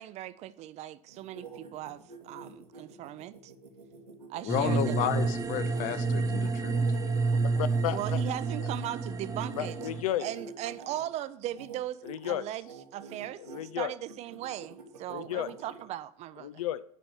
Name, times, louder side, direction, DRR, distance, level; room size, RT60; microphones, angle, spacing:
voice 1, 0.0-3.5 4.3-4.9 7.9-9.8 10.2-12.0 12.2-16.5, right 13 dB, 35° right, 15 dB, 0.5 m, -38 dB
sound 1, 1.1-8.9 9.4-11.0 11.5-11.8 12.0-12.3 12.6-13.6 14.1-15.8, right 4 dB, 90° right, 1.5 m, -47 dB
voice 2, 4.4-6.8, left 11 dB, 40° left, 12 dB, 0.8 m, -32 dB
sound 2, 4.5-10.0, right 3 dB, 15° right, 0.9 m, -29 dB
voice 3, 7.6-8.2 8.6-8.7 9.5-10.3 12.0-12.5 13.4-13.9 15.1-15.5 16.4-16.8, left 13 dB, 65° left, 15 dB, 0.4 m, -33 dB
9.1 x 5.1 x 5.8 m, 0.70 s
hypercardioid pair, 90°, 20 cm